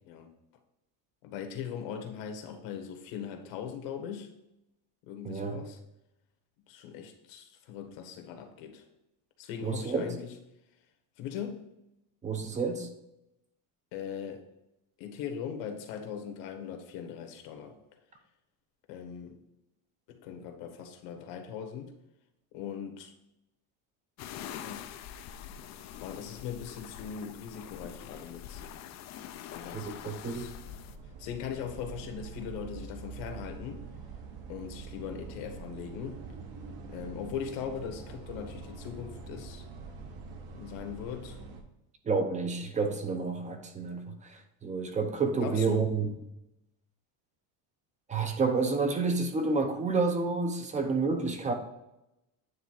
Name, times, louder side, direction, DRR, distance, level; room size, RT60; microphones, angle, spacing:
voice 1, 1.2-4.3 5.1-5.8 6.7-8.8 9.4-10.3 11.2-11.7 13.9-14.4 15.0-17.8 18.9-19.4 20.1-21.9 22.5-23.1 24.5-24.9 26.0-28.7 29.5-30.5 31.2-33.8 34.5-36.2 36.9-39.7 40.5-41.4 45.4-45.9, left 8 dB, 80° left, 5 dB, 1.5 m, -40 dB
voice 2, 5.2-5.6 9.6-10.1 12.2-12.9 29.7-30.5 42.1-46.1 48.1-51.5, right 4 dB, 15° right, 6 dB, 0.6 m, -29 dB
sound 1, 24.2-31.0, left 9 dB, 40° left, 0.4 m, -44 dB
sound 2, 30.1-41.6, right 4 dB, 50° right, 1.1 m, -45 dB
9.4 x 3.4 x 4.7 m, 0.87 s
cardioid pair, 165°, 45 cm